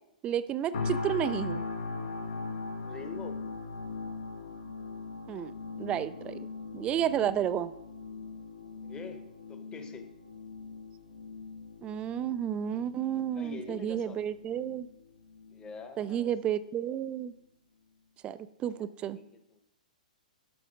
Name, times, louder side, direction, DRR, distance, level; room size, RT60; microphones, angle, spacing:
voice 1, 0.2-1.6 5.3-5.5 5.8-6.4 6.7-7.7 11.8-14.9 16.0-17.3 18.2-19.2, right 10 dB, 25° right, 15 dB, 0.4 m, -31 dB
sound 1, 0.7-15.7 16.2-16.4, left 4 dB, 70° left, 1.3 m, -40 dB
voice 2, 2.8-3.5 8.8-10.0 13.3-14.2 15.5-16.3 18.7-19.6, left 4 dB, 15° left, 7 dB, 1.0 m, -45 dB
7.7 x 6.2 x 5.2 m, 0.79 s
hypercardioid pair, 120°, 5 cm